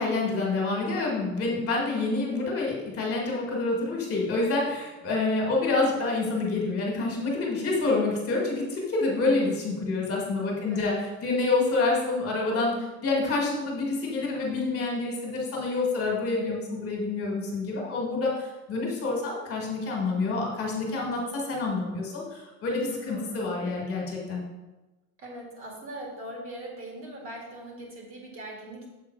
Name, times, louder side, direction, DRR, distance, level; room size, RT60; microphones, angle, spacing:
voice 1, 0.0-24.4, left 3 dB, 40° left, -1 dB, 1.8 m, -27 dB
voice 2, 10.6-10.9 23.1-23.4 25.2-28.9, right 1 dB, 35° right, -1 dB, 1.9 m, -41 dB
7.1 x 3.6 x 4.6 m, 1.1 s
cardioid pair, 130°, 35 cm